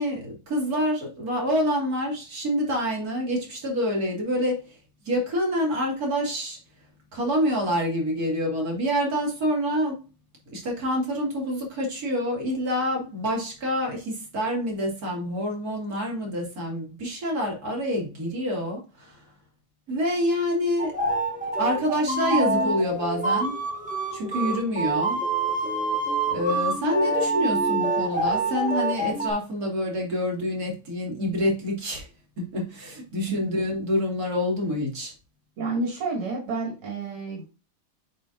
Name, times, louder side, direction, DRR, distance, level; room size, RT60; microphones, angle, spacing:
voice 1, 0.0-4.8 5.0-6.6 7.1-10.0 10.5-19.3 19.9-20.9 21.6-23.6 24.1-25.2 26.3-32.1 32.4-35.1, equal, 45° right, 2.9 m, -27 dB
sound 1, 20.8-29.3, right 2 dB, 5° right, 1.3 m, -26 dB
voice 2, 35.6-37.5, right 3 dB, 80° right, 3.0 m, -30 dB
8.1 x 5.9 x 2.6 m
omnidirectional pair, 2.4 m